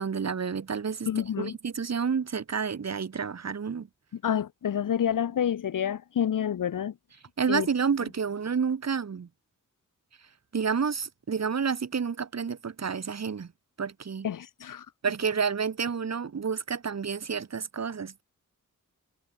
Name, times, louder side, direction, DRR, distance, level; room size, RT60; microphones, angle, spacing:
voice 1, 0.0-3.9 7.4-9.3 10.5-13.5 13.8-14.3 15.0-18.2, right 6 dB, 55° right, 1.0 m, -30 dB
voice 2, 1.1-1.6 4.2-6.9 7.5-7.7 14.2-14.9, left 9 dB, 80° left, 0.7 m, -28 dB
wide cardioid pair, 95°, 32 cm